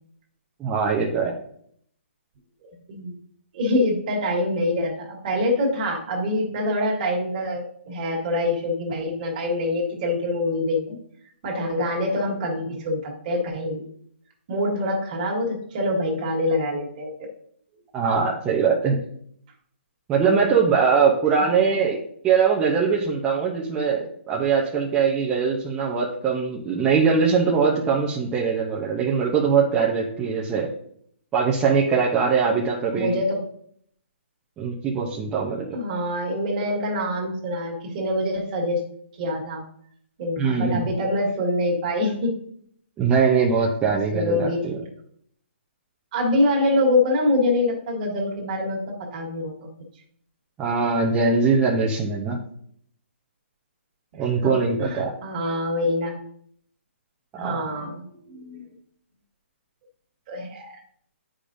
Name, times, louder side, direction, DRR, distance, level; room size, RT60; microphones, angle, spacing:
voice 1, 0.6-1.4 17.9-19.0 20.1-22.0 22.2-30.7 31.3-33.2 34.6-35.8 40.4-40.9 43.0-44.7 50.6-52.4 54.1-55.1 57.4-57.6, right 5 dB, 15° right, -3 dB, 0.7 m, -22 dB
voice 2, 3.5-11.0 11.4-13.9 14.5-17.1 21.4-21.6 32.9-33.4 35.7-38.8 39.2-39.6 40.2-42.4 43.9-44.6 46.1-49.5 54.2-56.2 57.4-58.6 60.3-60.8, left 1 dB, 40° right, 0 dB, 1.8 m, -25 dB
8.4 x 5.0 x 2.6 m, 0.65 s
hypercardioid pair, 155°, 7 cm